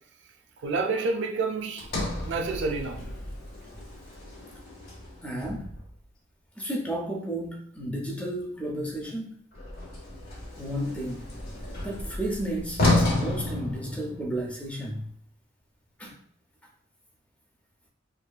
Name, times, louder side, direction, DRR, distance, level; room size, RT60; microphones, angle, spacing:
voice 1, 0.6-1.9 2.2-3.1, right 3 dB, 60° right, 0.3 m, -28 dB
Sliding door, 1.8-6.0 9.5-14.5, left 2 dB, 50° left, 0.7 m, -31 dB
voice 2, 5.2-5.7 6.6-9.4 10.6-11.3 11.8-15.1 16.0-16.1, right 1 dB, 5° left, 0.4 m, -32 dB
2.7 x 2.3 x 2.2 m
head